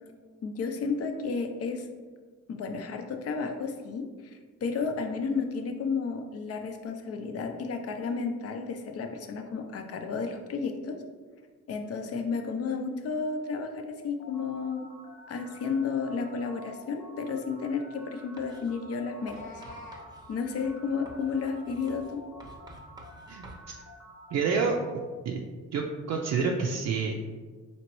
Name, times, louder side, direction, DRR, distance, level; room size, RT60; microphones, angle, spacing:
voice 1, 0.4-1.9 2.5-11.0 11.7-14.9 15.3-19.6 20.3-22.2, left 5 dB, 55° left, 5 dB, 0.6 m, -32 dB
sound 1, 14.2-24.8, left 1 dB, 75° left, 0.9 m, -49 dB
Writing, 18.4-18.8 19.3-23.7, right 1 dB, 15° right, 0.7 m, -51 dB
Meow, 19.0-20.1, left 1 dB, 25° left, 0.9 m, -47 dB
voice 2, 23.3-23.7 24.3-24.8 25.2-25.4 25.7-27.1, right 5 dB, 60° right, -1 dB, 0.5 m, -28 dB
4.2 x 3.0 x 3.0 m, 1.5 s
cardioid pair, 90°, 30 cm